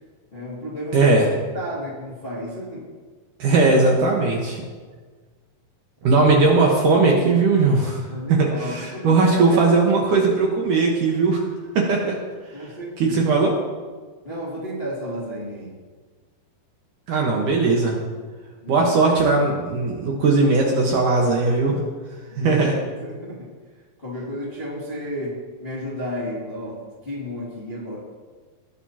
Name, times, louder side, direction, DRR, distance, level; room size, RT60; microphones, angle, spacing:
voice 1, 0.3-1.1 1.5-2.9 6.0-6.2 8.1-10.3 12.5-13.4 14.2-15.7 18.6-18.9 22.3-23.5 24.0-28.0, equal, 25° left, -6 dB, 1.4 m, -32 dB
voice 2, 0.9-1.2 3.4-4.6 6.0-8.0 8.3-11.4 11.8-12.2 13.0-13.5 17.1-18.0 18.7-21.8 22.4-22.8, right 3 dB, 65° right, -1 dB, 2.4 m, -18 dB
19.0 x 9.6 x 2.9 m, 1.4 s
omnidirectional pair, 4.8 m